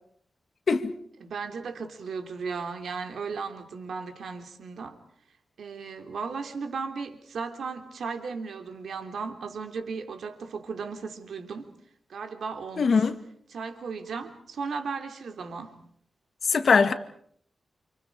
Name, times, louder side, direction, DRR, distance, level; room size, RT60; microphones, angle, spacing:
voice 1, 1.2-5.0 5.6-11.7 12.1-13.1 13.5-15.7, right 5 dB, 80° right, 3.4 m, -36 dB
voice 2, 12.8-13.2 16.4-16.9, left 5 dB, 55° left, 2.1 m, -21 dB
30.0 x 28.0 x 5.0 m
wide cardioid pair, 130°, 0 cm